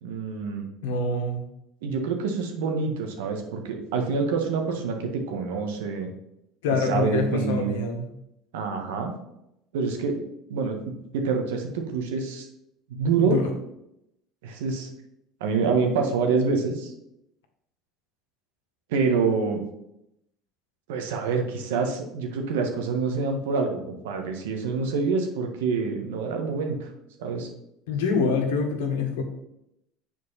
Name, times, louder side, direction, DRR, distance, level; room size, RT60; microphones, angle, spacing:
voice 1, 0.0-0.7 1.8-6.1 6.9-7.8 8.5-9.1 9.7-10.2 10.5-12.4 12.9-13.4 14.4-14.9 15.4-16.9 18.9-19.6 20.9-26.9 27.2-27.5, right 5 dB, 85° right, 4 dB, 1.4 m, -26 dB
voice 2, 0.8-1.5 6.6-8.1 13.2-13.5 27.9-29.2, left 3 dB, 90° left, 3 dB, 1.5 m, -25 dB
7.3 x 4.6 x 5.7 m, 0.82 s
supercardioid pair, 100°, 0 cm